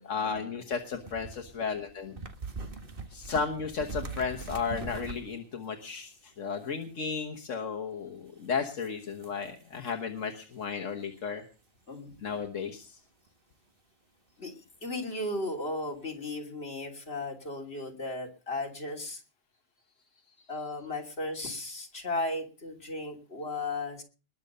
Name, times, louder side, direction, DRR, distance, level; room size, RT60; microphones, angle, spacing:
voice 1, 0.0-2.2 3.1-11.4 12.2-13.0, left 5 dB, 75° left, 3 dB, 1.6 m, -34 dB
sound 1, 0.8-5.6 6.6-7.2 8.4-8.5 8.8-10.0 10.5-10.6 13.3-13.4, right 3 dB, 45° right, 1.8 m, -42 dB
voice 2, 14.8-19.2 20.5-24.0, left 2 dB, 55° left, 1 dB, 3.2 m, -35 dB
20.5 x 6.9 x 6.6 m, 0.37 s
omnidirectional pair, 1.3 m